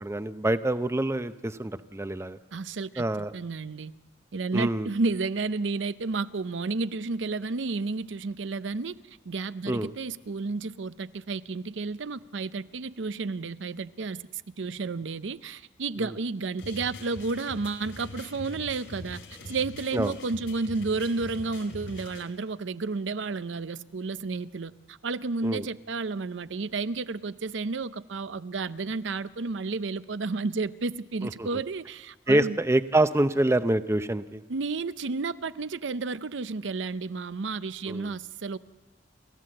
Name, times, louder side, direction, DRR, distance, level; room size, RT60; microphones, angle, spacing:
voice 1, 0.0-2.4 3.0-3.3 4.5-4.9 9.7-9.9 16.0-16.1 19.9-20.1 25.4-25.6 31.2-31.5 32.3-34.4 37.9-38.1, right 1 dB, 15° right, 12 dB, 0.6 m, -26 dB
voice 2, 2.5-3.9 4.3-9.0 9.3-32.6 34.5-38.6, right 3 dB, 80° right, 15 dB, 0.6 m, -32 dB
sound 1, 16.6-22.2, left 1 dB, 80° left, 4.1 m, -43 dB
29.5 x 14.5 x 7.7 m, 1.3 s
head